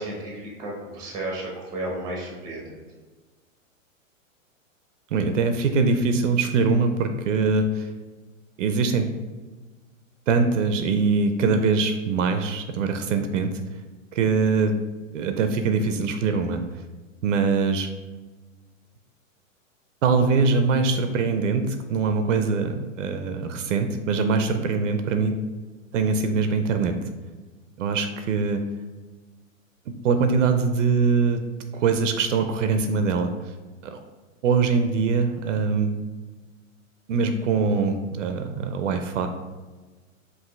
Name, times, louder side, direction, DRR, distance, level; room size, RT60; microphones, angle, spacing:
voice 1, 0.0-2.6, right 1 dB, 10° right, -2 dB, 0.7 m, -33 dB
voice 2, 5.1-7.8 8.6-9.1 10.3-13.5 14.1-14.7 15.1-16.6 17.2-17.9 20.0-25.3 25.9-26.9 27.8-28.6 30.0-31.4 31.7-33.3 33.8-34.0 34.4-35.9 37.1-39.3, right 4 dB, 65° right, 7 dB, 0.5 m, -22 dB
5.8 x 2.6 x 3.2 m, 1.3 s
hypercardioid pair, 160°, 40 cm